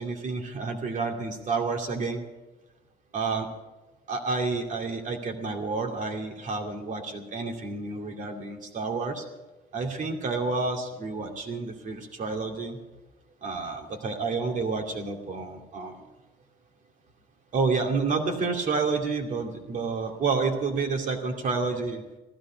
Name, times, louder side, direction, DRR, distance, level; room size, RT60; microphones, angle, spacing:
voice 1, 0.0-2.2 3.1-3.5 4.1-9.2 9.7-12.8 13.4-16.1 17.5-22.0, right 4 dB, 50° right, 3 dB, 2.5 m, -29 dB
15.5 x 13.0 x 5.9 m, 1.1 s
cardioid pair, 110°, 17 cm